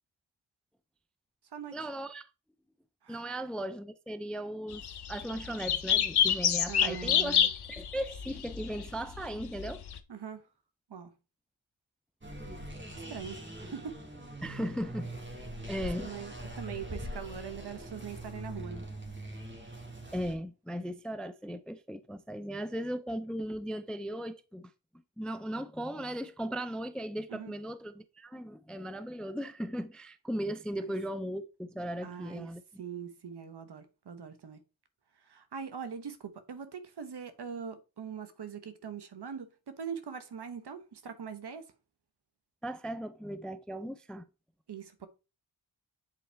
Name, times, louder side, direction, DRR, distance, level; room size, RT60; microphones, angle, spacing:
voice 1, 1.7-2.2 3.1-9.8 14.4-15.1 15.7-16.1 20.1-24.7 25.2-32.6 42.6-44.2, equal, ahead, 0.4 m, -37 dB
sound 1, 4.7-10.0, left 9 dB, 60° left, 0.8 m, -29 dB
voice 2, 6.7-7.5 10.1-10.4 10.9-11.1 13.1-14.0 16.0-18.8 27.3-27.5 32.0-32.5 32.8-34.6 35.2-41.7 44.7-45.1, right 7 dB, 60° right, 1.1 m, -42 dB
sound 2, 12.2-20.3, right 1 dB, 25° right, 1.9 m, -42 dB
7.9 x 4.2 x 3.3 m
cardioid pair, 65°, 46 cm